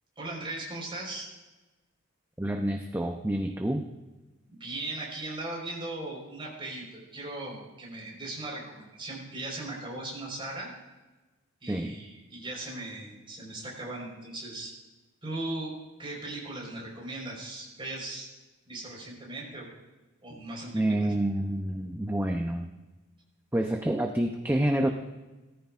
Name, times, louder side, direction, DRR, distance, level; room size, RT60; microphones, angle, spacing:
voice 1, 0.2-1.3 4.5-10.7 11.6-14.7 15.2-15.7 16.0-18.3 18.7-19.7 20.2-21.0, right 2 dB, 25° right, -2 dB, 4.5 m, -38 dB
voice 2, 2.4-3.9 11.7-12.0 20.7-22.7 23.5-24.9, right 1 dB, 10° right, 3 dB, 0.6 m, -28 dB
18.0 x 14.0 x 2.5 m, 1.1 s
head